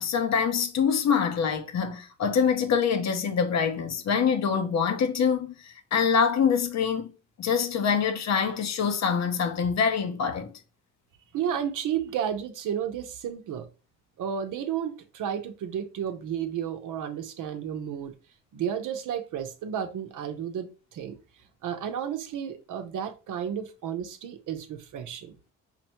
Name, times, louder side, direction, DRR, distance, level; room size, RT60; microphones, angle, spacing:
voice 1, 0.0-7.1 7.4-10.5, left 6 dB, 55° left, 0.8 m, -25 dB
voice 2, 11.3-13.7 14.2-18.1 18.5-21.2 21.6-25.3, right 9 dB, 70° right, 0.7 m, -32 dB
5.8 x 2.1 x 2.9 m
supercardioid pair, 65°, 32 cm